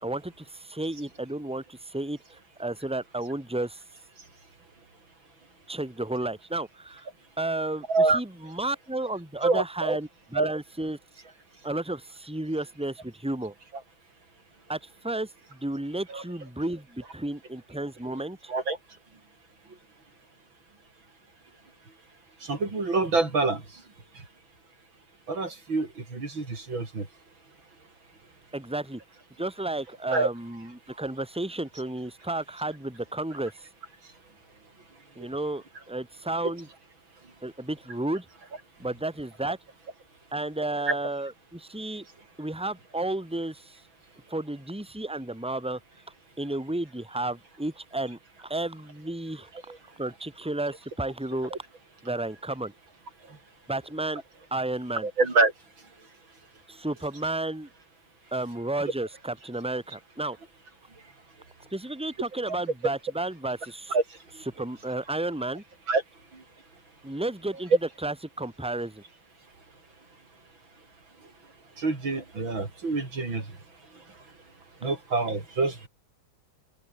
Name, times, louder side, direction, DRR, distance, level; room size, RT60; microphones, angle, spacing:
voice 1, 0.0-3.8 5.7-7.1 7.4-11.0 11.6-13.5 14.7-18.5 28.5-29.0 29.4-33.5 35.2-36.7 37.4-38.2 38.8-39.6 40.3-42.0 42.4-43.8 44.3-45.8 46.4-49.5 50.0-51.5 52.0-52.7 53.7-54.2 54.5-55.1 56.7-57.7 58.3-60.4 61.7-63.9 64.4-65.6 67.0-69.0, right 2 dB, 5° right, 3.3 m, -32 dB
voice 2, 7.9-8.2 9.4-10.0 10.4-10.5 16.1-16.2 18.5-18.8 22.4-23.8 24.2-24.3 25.3-27.1 30.1-30.3 40.9-41.0 49.7-49.8 53.3-53.4 55.0-55.5 63.9-64.4 65.9-66.0 66.3-66.4 71.8-73.5 74.8-75.9, right 3 dB, 85° right, 5.8 m, -26 dB
open air
omnidirectional pair, 2.1 m